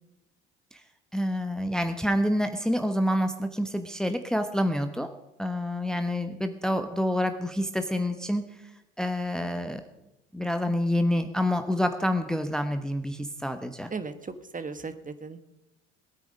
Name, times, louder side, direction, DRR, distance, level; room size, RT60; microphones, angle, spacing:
voice 1, 1.1-5.1 5.4-8.4 9.0-9.8 10.3-13.9, equal, ahead, 8 dB, 1.1 m, -27 dB
voice 2, 13.9-15.4, right 4 dB, 25° right, 11 dB, 1.4 m, -37 dB
19.5 x 9.1 x 5.2 m, 0.94 s
hypercardioid pair, 60°, 34 cm